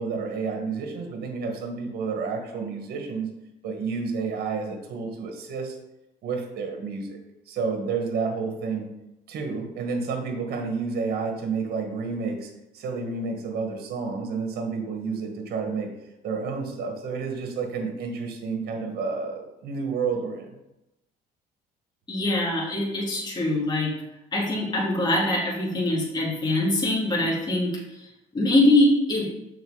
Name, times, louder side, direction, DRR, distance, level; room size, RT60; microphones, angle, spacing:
voice 1, 0.0-3.3 3.6-5.8 6.2-7.2 7.5-8.9 9.3-15.9 16.2-20.5, right 4 dB, 65° right, 3 dB, 1.6 m, -30 dB
voice 2, 22.1-23.9 24.3-29.3, left 1 dB, 25° left, -4 dB, 2.5 m, -23 dB
6.6 x 4.7 x 4.9 m, 0.92 s
cardioid pair, 110°, 17 cm